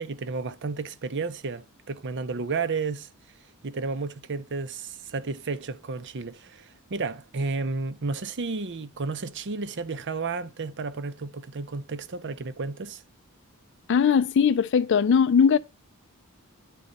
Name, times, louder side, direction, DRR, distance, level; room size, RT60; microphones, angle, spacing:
voice 1, 0.0-3.1 3.6-13.0, right 4 dB, 55° right, 0.7 m, -32 dB
voice 2, 13.9-15.6, left 6 dB, 55° left, 0.4 m, -20 dB
10.0 x 4.1 x 5.2 m
head